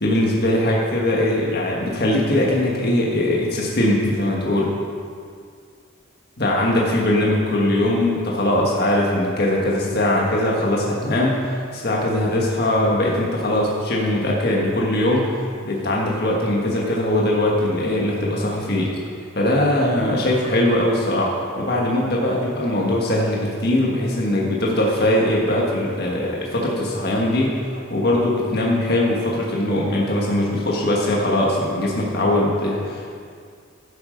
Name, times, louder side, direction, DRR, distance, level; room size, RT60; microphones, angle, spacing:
voice 1, 0.0-4.7 6.4-15.3 15.6-18.9 19.3-21.3 21.6-33.1, left 1 dB, 50° left, -3 dB, 1.6 m, -21 dB
11.5 x 8.6 x 5.2 m, 2.2 s
head